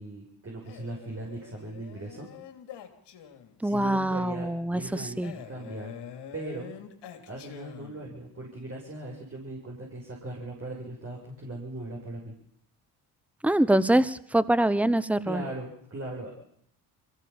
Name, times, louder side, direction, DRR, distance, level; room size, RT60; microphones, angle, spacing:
voice 1, 0.0-2.3 3.6-5.2 5.5-5.9 6.3-6.7 7.3-12.3 15.2-16.3, right 2 dB, 30° right, -1 dB, 6.6 m, -39 dB
Male speech man speaking, 0.7-3.7 5.2-8.2, left 8 dB, 65° left, 3.1 m, -46 dB
voice 2, 3.6-5.3 13.4-15.4, right 1 dB, 5° right, 17 dB, 1.1 m, -24 dB
22.5 x 16.0 x 7.3 m, 0.69 s
hypercardioid pair, 60°, 44 cm